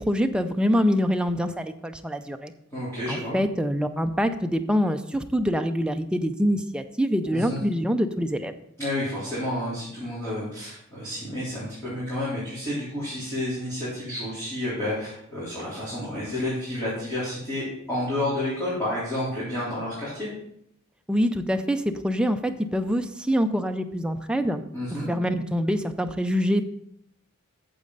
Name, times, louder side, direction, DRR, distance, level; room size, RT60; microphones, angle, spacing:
voice 1, 0.0-2.5 3.1-8.5 21.1-24.6 25.1-26.6, equal, 5° right, 7 dB, 0.4 m, -25 dB
voice 2, 2.7-3.4 7.3-7.6 8.8-20.3 24.7-25.1, left 1 dB, 10° left, -11 dB, 3.4 m, -30 dB
8.6 x 7.4 x 3.9 m, 0.73 s
head